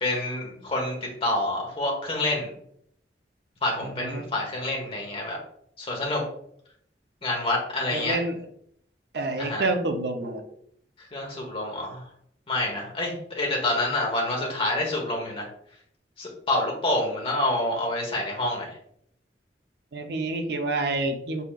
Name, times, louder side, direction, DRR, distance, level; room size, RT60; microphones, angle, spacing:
voice 1, 0.0-2.5 3.6-5.4 5.8-6.2 7.2-8.2 9.4-9.7 11.1-12.0 12.5-15.5 16.2-18.8, left 1 dB, 30° left, -1 dB, 1.2 m, -27 dB
voice 2, 3.8-4.2 7.9-8.3 9.1-10.4 19.9-21.4, right 2 dB, 65° right, 5 dB, 0.6 m, -28 dB
4.9 x 4.2 x 2.4 m, 0.67 s
head